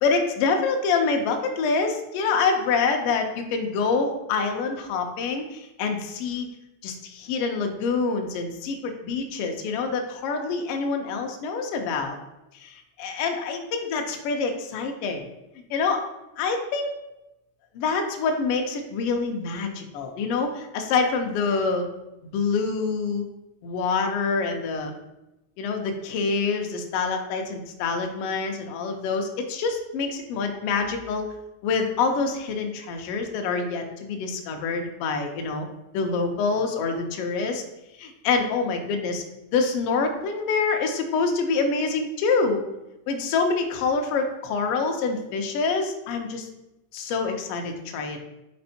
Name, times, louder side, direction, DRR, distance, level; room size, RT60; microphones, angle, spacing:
voice 1, 0.0-6.5 6.8-12.2 12.6-15.3 15.7-16.0 16.4-16.9 17.7-21.9 22.2-23.3 23.6-24.9 25.6-31.3 31.6-35.7 35.9-37.6 38.0-39.2 39.5-42.6 43.1-46.5 46.9-48.2, left 4 dB, 90° left, 3 dB, 1.3 m, -26 dB
5.4 x 4.3 x 4.1 m, 0.94 s
omnidirectional pair, 3.5 m